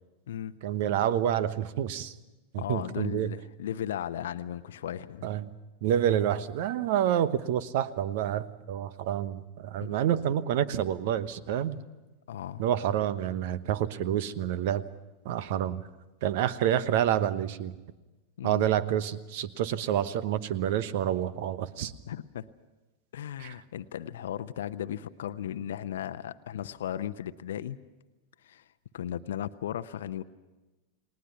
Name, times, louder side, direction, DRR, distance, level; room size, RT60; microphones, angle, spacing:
voice 1, 0.6-2.1 2.5-3.3 5.2-5.5 5.8-11.8 12.6-14.8 15.2-15.8 16.2-17.7 18.4-21.9 23.4-23.5, right 10 dB, 50° right, 16 dB, 1.1 m, -28 dB
voice 2, 2.6-5.3 9.8-10.0 12.3-12.6 18.4-18.7 22.1-22.5 23.1-27.8 28.4-28.6 28.9-30.2, left 10 dB, 60° left, 11 dB, 0.8 m, -36 dB
30.0 x 20.0 x 5.8 m, 1.1 s
figure-of-eight pair, 90°, 0 cm